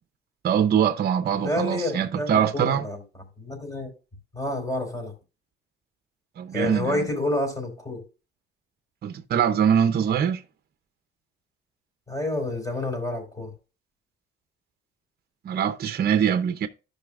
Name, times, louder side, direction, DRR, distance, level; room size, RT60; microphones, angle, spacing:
voice 1, 0.4-2.8 6.4-7.1 9.0-10.4 15.4-16.7, right 8 dB, 55° right, 0.7 m, -23 dB
voice 2, 1.4-3.0 3.4-3.9 4.3-5.1 6.5-8.0 12.1-13.5, left 1 dB, 15° left, 4.2 m, -29 dB
14.0 x 5.5 x 2.4 m
cardioid pair, 90°, 20 cm